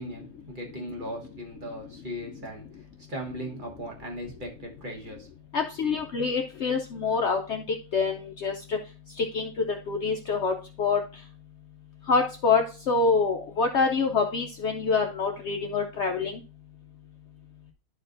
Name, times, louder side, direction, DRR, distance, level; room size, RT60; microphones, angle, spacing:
voice 1, 0.0-5.3, equal, 35° right, -1 dB, 1.3 m, -38 dB
voice 2, 5.5-7.6 7.9-8.8 9.2-11.0 12.1-16.4, left 4 dB, 65° left, 4 dB, 0.7 m, -26 dB
11.5 x 4.3 x 2.5 m, 0.34 s
omnidirectional pair, 1.6 m